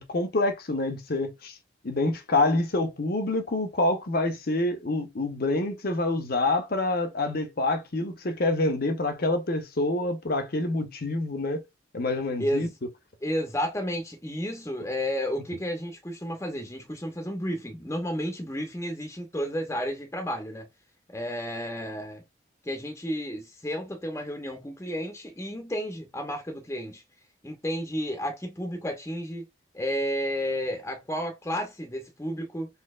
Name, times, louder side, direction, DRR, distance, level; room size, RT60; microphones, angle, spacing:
voice 1, 0.0-1.5 1.8-11.6 11.9-12.7, left 2 dB, 50° left, 0.8 m, -27 dB
voice 2, 12.4-12.7 13.2-20.7 21.1-22.2 22.6-27.0 27.4-29.5 29.7-32.7, equal, 15° left, 0.8 m, -32 dB
4.1 x 2.9 x 2.3 m
head